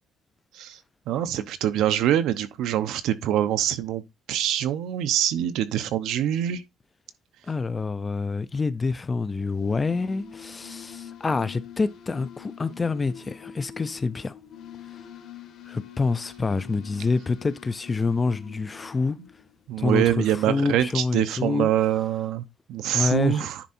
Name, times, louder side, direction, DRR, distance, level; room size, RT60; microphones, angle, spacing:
voice 1, 1.1-4.0 4.3-6.6 19.7-23.6, right 11 dB, 85° right, 0.8 m, -24 dB
voice 2, 7.5-14.3 15.7-19.2 19.8-21.7 22.9-23.5, left 4 dB, 20° left, 0.4 m, -27 dB
sound 1, 9.4-19.8, left 8 dB, 65° left, 1.7 m, -45 dB
10.0 x 3.6 x 4.3 m
cardioid pair, 180°, 0 cm